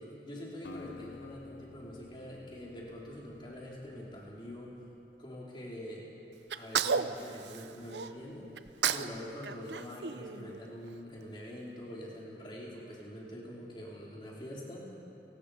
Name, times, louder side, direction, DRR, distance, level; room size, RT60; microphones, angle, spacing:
voice 1, 0.0-4.7 5.2-6.1 6.5-8.5 8.9-14.9, equal, 30° left, -4 dB, 4.2 m, -45 dB
Acoustic guitar, 0.6-4.7, left 3 dB, 85° left, 0.9 m, -51 dB
Sneeze, 6.5-8.1 8.6-9.2 9.4-10.9, right 6 dB, 80° right, 0.7 m, -33 dB
30.0 x 18.5 x 5.1 m, 2.8 s
head